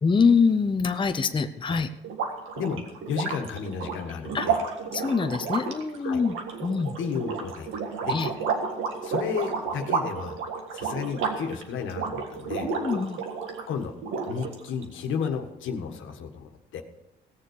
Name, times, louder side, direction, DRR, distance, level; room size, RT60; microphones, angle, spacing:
voice 1, 0.0-1.9 4.3-4.5 4.9-6.3 6.6-7.0 8.1-8.3 12.6-13.2, left 5 dB, 25° left, 8 dB, 0.7 m, -24 dB
sound 1, 2.0-13.7 14.0-14.8, right 5 dB, 90° right, 1.8 m, -31 dB
voice 2, 3.1-4.6 6.0-6.2 7.0-7.7 8.0-8.2 9.0-10.4 10.7-12.7 13.7-13.9 14.2-16.8, left 6 dB, 80° left, 5 dB, 1.6 m, -32 dB
17.0 x 7.1 x 6.4 m, 0.96 s
cardioid pair, 90°, 20 cm